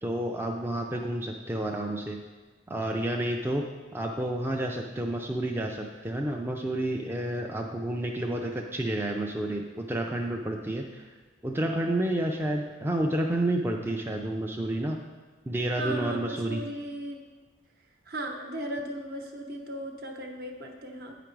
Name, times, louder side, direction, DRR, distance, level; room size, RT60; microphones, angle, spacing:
voice 1, 0.0-2.2 2.7-3.7 3.9-11.0 11.4-15.0 15.5-16.7, right 1 dB, 10° right, 1 dB, 0.4 m, -30 dB
voice 2, 15.8-17.2 18.1-21.2, right 1 dB, 50° right, 3 dB, 0.9 m, -36 dB
8.7 x 5.0 x 4.5 m, 1.3 s
head